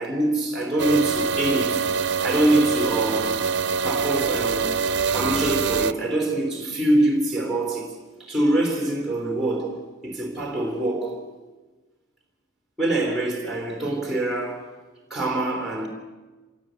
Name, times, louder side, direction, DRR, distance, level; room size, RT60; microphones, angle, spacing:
voice 1, 0.0-1.9 2.2-3.4 3.8-4.8 5.1-11.2 12.8-14.7 15.1-15.9, right 1 dB, ahead, 3.3 m, -24 dB
sound 1, 0.8-5.9, right 5 dB, 55° right, 0.8 m, -25 dB
26.0 x 18.0 x 9.3 m
head